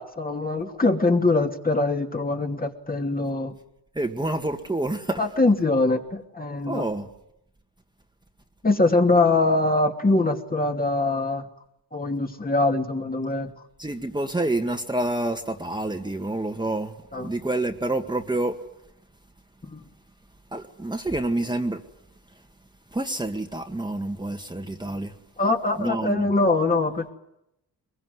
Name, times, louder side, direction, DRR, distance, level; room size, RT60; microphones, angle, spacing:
voice 1, 0.0-3.5 5.2-6.8 8.6-11.4 11.9-13.5 17.1-17.3 19.6-19.8 25.4-27.1, left 2 dB, 20° left, 2.7 m, -23 dB
voice 2, 4.0-5.2 6.7-7.1 13.8-16.9 17.2-18.6 20.5-21.8 22.9-25.1 25.8-26.3, right 2 dB, 10° right, 2.0 m, -28 dB
23.0 x 22.5 x 9.7 m
cardioid pair, 95°, 41 cm